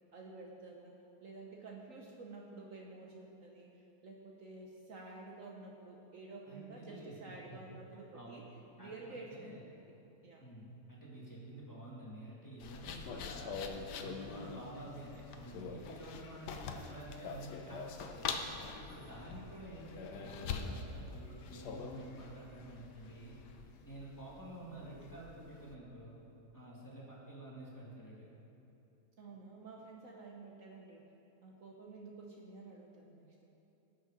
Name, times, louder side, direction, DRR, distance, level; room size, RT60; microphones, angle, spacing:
voice 1, 0.1-3.7 4.0-8.5 8.8-9.4 10.2-10.4 29.2-31.1 31.4-33.5, right 3 dB, 55° right, -1 dB, 1.3 m, -51 dB
voice 2, 6.5-7.6 8.1-8.4 8.8-8.9 9.3-9.6 10.4-23.4 23.8-26.2 26.5-28.3, right 1 dB, 10° left, -7 dB, 2.1 m, -50 dB
sound 1, 12.6-25.7, left 5 dB, 85° left, 1.4 m, -44 dB
18.0 x 6.5 x 5.0 m, 3.0 s
omnidirectional pair, 1.7 m